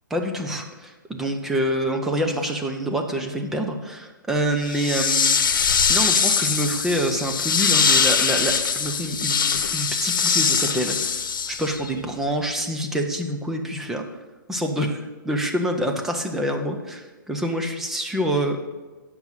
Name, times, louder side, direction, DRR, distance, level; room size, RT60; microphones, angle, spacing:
voice 1, 0.1-5.4 5.9-14.0 14.5-18.6, right 1 dB, 5° right, 4 dB, 0.3 m, -26 dB
sound 1, 4.6-11.9, left 6 dB, 70° left, 0.9 m, -22 dB
9.1 x 6.0 x 5.5 m, 1.3 s
hypercardioid pair, 165°, 11 cm